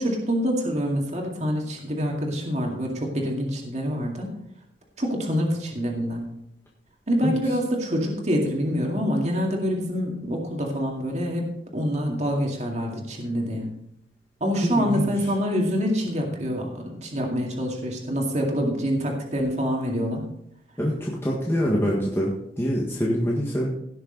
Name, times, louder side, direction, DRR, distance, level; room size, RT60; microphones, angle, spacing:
voice 1, 0.0-4.3 5.0-6.3 7.1-13.7 14.4-20.2, equal, 40° right, 0 dB, 2.2 m, -26 dB
voice 2, 14.7-15.1 20.8-23.7, equal, 15° left, -4 dB, 1.6 m, -25 dB
17.0 x 6.7 x 4.0 m, 0.77 s
head